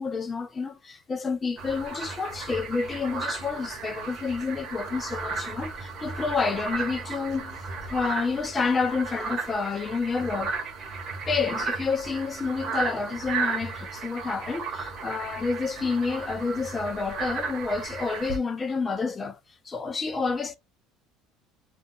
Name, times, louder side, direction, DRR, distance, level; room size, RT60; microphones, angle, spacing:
voice 1, 0.0-7.6 7.9-10.5 11.3-19.4 19.7-20.5, left 4 dB, 15° left, 0.3 m, -29 dB
sound 1, 1.6-18.4, right 4 dB, 35° right, 0.8 m, -35 dB
2.3 x 2.2 x 3.7 m
cardioid pair, 170°, 0 cm